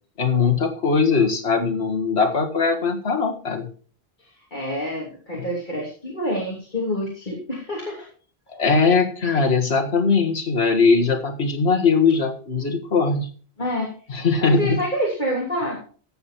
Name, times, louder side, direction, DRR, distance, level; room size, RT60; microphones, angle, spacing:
voice 1, 0.2-3.7 8.5-13.3 14.1-14.8, left 4 dB, 80° left, 4 dB, 2.0 m, -20 dB
voice 2, 4.5-8.1 13.6-15.8, equal, 45° left, -3 dB, 3.3 m, -27 dB
15.5 x 7.3 x 4.5 m, 0.41 s
omnidirectional pair, 1.1 m